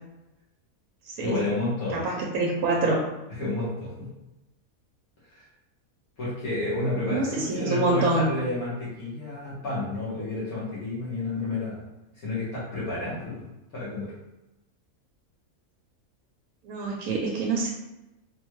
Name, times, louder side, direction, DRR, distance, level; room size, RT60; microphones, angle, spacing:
voice 1, 1.2-2.0 3.4-4.1 5.3-5.4 6.2-11.8 12.2-13.4 13.7-14.1, left 2 dB, 80° left, -10 dB, 1.7 m, -30 dB
voice 2, 1.9-3.0 7.1-8.3 16.6-17.7, right 2 dB, 85° right, -1 dB, 1.1 m, -25 dB
4.0 x 2.2 x 3.0 m, 0.97 s
omnidirectional pair, 1.5 m